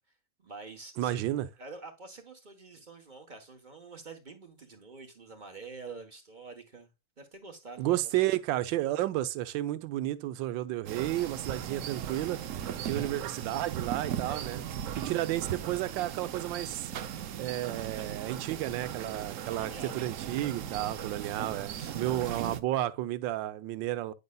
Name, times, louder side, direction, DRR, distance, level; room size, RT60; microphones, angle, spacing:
voice 1, 0.4-1.2 1.6-6.9 7.2-8.3 12.8-13.5 14.2-14.5 19.5-20.0 21.8-21.9, right 4 dB, 35° right, 0.8 m, -47 dB
voice 2, 1.0-1.5 7.8-12.4 12.9-14.6 15.0-16.9 17.4-24.1, right 14 dB, 85° right, 1.3 m, -32 dB
sound 1, 10.9-22.6, right 9 dB, 70° right, 0.8 m, -38 dB
9.4 x 5.3 x 2.2 m
omnidirectional pair, 2.0 m